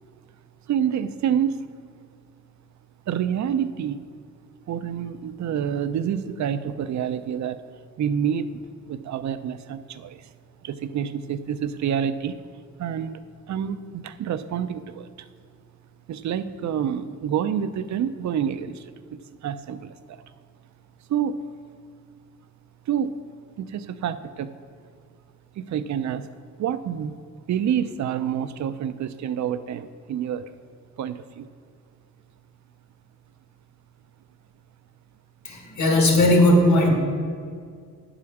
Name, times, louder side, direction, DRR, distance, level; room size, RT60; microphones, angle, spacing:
voice 1, 0.7-1.6 3.1-4.0 4.7-7.6 8.0-8.6 8.9-10.3 10.6-12.4 12.8-13.2 13.5-15.3 16.1-20.2 21.1-21.4 22.9-23.1 23.6-24.5 25.6-26.3 26.6-27.1 27.5-30.5 31.0-31.5, right 8 dB, 60° right, 12 dB, 0.5 m, -28 dB
voice 2, 35.4-36.9, left 1 dB, 60° left, 1 dB, 1.9 m, -17 dB
9.6 x 4.9 x 7.0 m, 2.2 s
wide cardioid pair, 145°, 32 cm